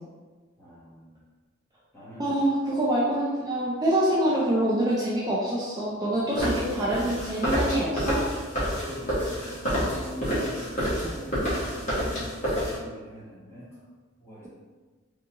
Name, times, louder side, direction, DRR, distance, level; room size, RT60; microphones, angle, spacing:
voice 1, 0.6-1.1 1.9-2.3 6.2-6.4 8.4-9.6 9.8-13.7 14.2-14.5, equal, 15° left, -9 dB, 1.1 m, -43 dB
voice 2, 2.2-8.2, right 1 dB, 20° right, -7 dB, 0.4 m, -25 dB
sound 1, 6.4-12.8, equal, 40° left, 1.3 m, -28 dB
3.6 x 2.3 x 2.9 m, 1.4 s
head